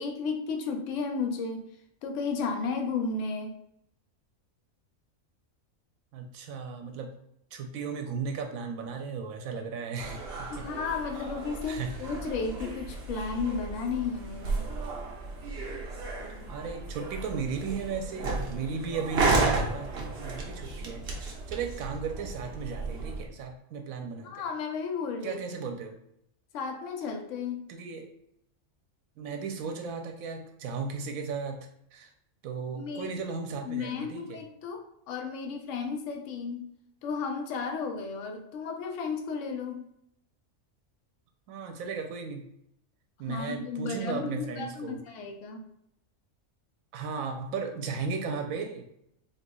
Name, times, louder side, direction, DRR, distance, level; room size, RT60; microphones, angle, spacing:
voice 1, 0.0-1.6 2.0-3.5 10.5-14.6 24.2-25.4 26.5-27.7 32.8-33.1 33.6-36.7 37.0-39.8 43.3-45.6, left 5 dB, 70° left, 4 dB, 0.9 m, -33 dB
voice 2, 6.1-7.1 7.5-10.2 10.5-10.6 11.7-12.0 16.5-24.5 25.2-26.0 27.7-28.1 29.2-31.6 31.9-32.1 32.4-34.4 41.5-42.4 43.2-45.0 46.9-48.9, right 5 dB, 85° right, 4 dB, 1.0 m, -35 dB
sound 1, 10.0-23.2, right 3 dB, 55° right, 0.8 m, -33 dB
4.3 x 2.7 x 2.2 m, 0.75 s
omnidirectional pair, 1.4 m